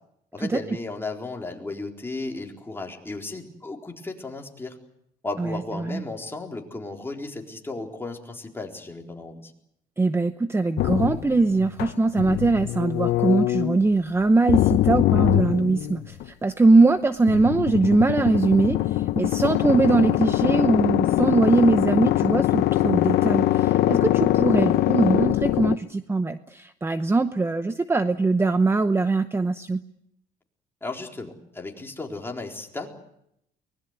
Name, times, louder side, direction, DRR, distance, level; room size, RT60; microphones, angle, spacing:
voice 1, 0.3-4.8 5.2-9.5 30.8-33.0, left 3 dB, 15° left, 1 dB, 4.1 m, -35 dB
voice 2, 5.4-6.0 10.0-29.8, right 3 dB, 15° right, 11 dB, 0.8 m, -22 dB
sound 1, 10.8-13.8 14.5-16.2 17.3-25.7, left 14 dB, 75° left, 0.8 m, -22 dB
24.0 x 21.0 x 8.1 m, 0.78 s
cardioid pair, 110°, 17 cm